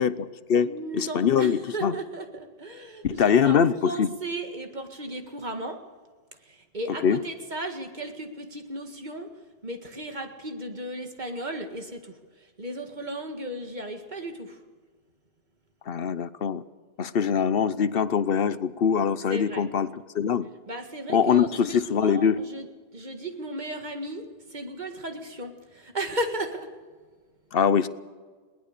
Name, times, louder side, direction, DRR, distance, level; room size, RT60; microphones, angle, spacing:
voice 1, 0.0-1.9 3.0-4.1 7.0-7.2 15.9-16.6 17.0-19.9 20.1-20.5 21.1-22.4 27.5-27.9, left 7 dB, 60° left, 15 dB, 1.0 m, -23 dB
voice 2, 0.6-5.8 6.4-9.3 9.6-14.6 19.3-19.6 20.7-22.7 22.9-26.7, right 1 dB, 40° right, 5 dB, 2.0 m, -35 dB
21.5 x 19.0 x 6.7 m, 1.5 s
omnidirectional pair, 1.1 m